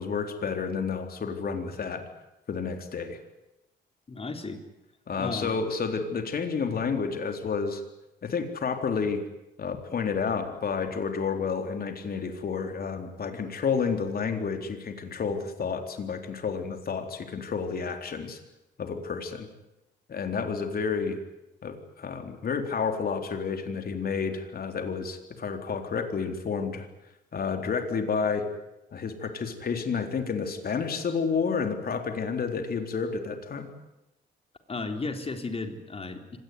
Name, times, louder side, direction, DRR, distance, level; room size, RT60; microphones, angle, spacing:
voice 1, 0.0-2.0 2.5-3.2 5.1-7.8 8.2-9.2 9.6-18.4 18.8-19.5 20.1-21.2 21.6-26.9 27.3-28.5 28.9-33.7, left 5 dB, 50° left, 6 dB, 4.0 m, -30 dB
voice 2, 4.1-4.6 5.2-5.5 34.7-36.4, left 3 dB, 30° left, 6 dB, 3.9 m, -34 dB
25.0 x 18.5 x 9.6 m, 0.94 s
cardioid pair, 90°, 20 cm